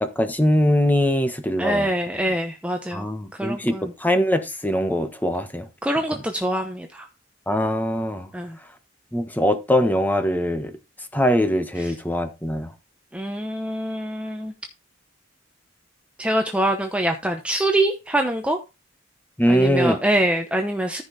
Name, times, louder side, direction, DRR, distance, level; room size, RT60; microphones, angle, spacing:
voice 1, 0.0-1.9 2.9-5.7 7.5-8.3 9.1-10.7 11.1-12.7 19.4-20.0, equal, 10° left, 1.2 m, -22 dB
voice 2, 1.6-3.1 3.4-3.9 5.8-7.1 8.3-8.6 11.8-11.9 13.1-14.5 16.2-18.6 19.5-21.0, right 1 dB, 5° right, 0.9 m, -24 dB
14.0 x 5.4 x 4.1 m
head